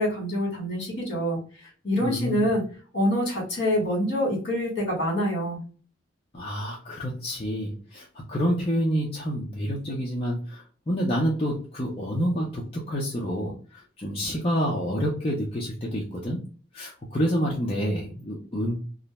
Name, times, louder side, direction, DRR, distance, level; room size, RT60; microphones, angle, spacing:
voice 1, 0.0-1.4 1.8-2.6 2.9-5.6, equal, 65° left, -1 dB, 1.4 m, -26 dB
voice 2, 2.0-2.5 6.3-16.4 16.7-18.7, equal, 30° left, -4 dB, 0.5 m, -28 dB
2.5 x 2.1 x 3.0 m, 0.40 s
head